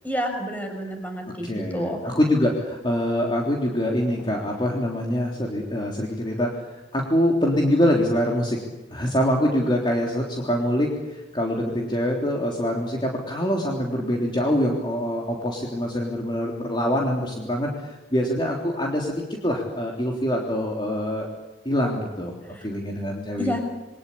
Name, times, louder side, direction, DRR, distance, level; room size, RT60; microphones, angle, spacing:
voice 1, 0.0-2.0 22.5-22.7 23.4-23.6, equal, 10° left, 4 dB, 5.8 m, -29 dB
voice 2, 1.4-8.6 8.9-21.3 21.7-22.3 22.6-23.6, equal, 25° left, -1 dB, 3.5 m, -24 dB
29.0 x 23.5 x 8.6 m, 1.1 s
head